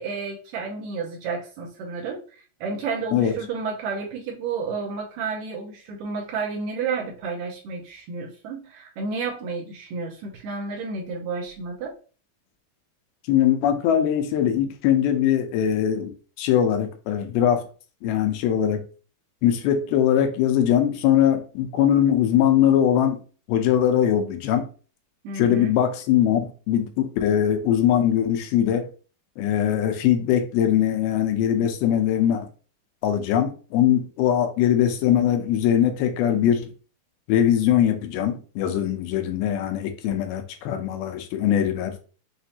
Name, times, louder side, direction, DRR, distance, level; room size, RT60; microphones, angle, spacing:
voice 1, 0.0-11.9 25.2-25.8, right 4 dB, 75° right, 2.3 m, -31 dB
voice 2, 13.3-17.6 18.0-18.8 19.4-23.2 23.5-24.7 25.4-28.9 29.4-32.5 33.0-36.7 37.3-42.0, left 10 dB, 85° left, 2.6 m, -21 dB
6.6 x 2.7 x 2.7 m
omnidirectional pair, 4.3 m